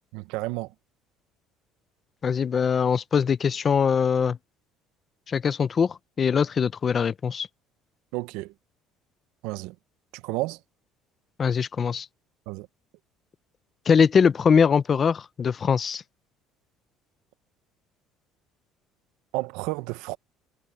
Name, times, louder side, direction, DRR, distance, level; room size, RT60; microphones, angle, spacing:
voice 1, 0.1-0.7 8.1-8.5 9.4-9.7 10.2-10.6 12.5-12.7 19.3-20.2, right 20 dB, 80° right, 0.6 m, -31 dB
voice 2, 2.2-4.4 5.3-7.5 11.4-12.1 13.9-16.0, left 6 dB, 25° left, 0.6 m, -22 dB
cardioid pair, 170°, 0 cm